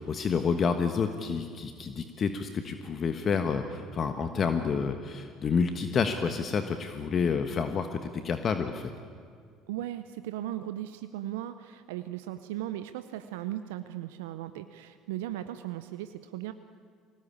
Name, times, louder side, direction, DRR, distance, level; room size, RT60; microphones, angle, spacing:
voice 1, 0.0-8.9, left 5 dB, 45° left, 7 dB, 1.3 m, -29 dB
voice 2, 9.7-16.5, right 13 dB, 80° right, 11 dB, 0.7 m, -37 dB
23.0 x 18.5 x 8.7 m, 2.1 s
hypercardioid pair, 65°, 0 cm